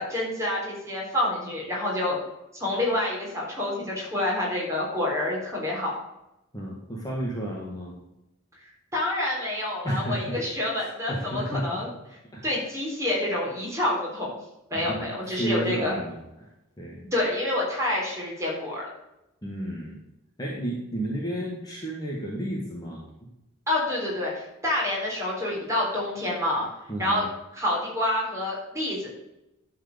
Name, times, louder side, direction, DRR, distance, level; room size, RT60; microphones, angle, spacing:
voice 1, 0.0-2.2 2.5-6.0 8.9-11.9 12.4-14.4 14.7-15.9 17.1-18.9 23.7-26.7 27.0-27.2 27.5-29.1, left 1 dB, 15° right, -4 dB, 4.0 m, -28 dB
voice 2, 6.5-7.9 9.8-10.4 10.7-11.8 12.3-12.4 14.7-16.5 16.8-17.0 19.4-20.0 20.4-23.0 26.9-27.3, right 1 dB, 20° left, -3 dB, 1.7 m, -32 dB
11.5 x 4.9 x 6.8 m, 0.90 s
head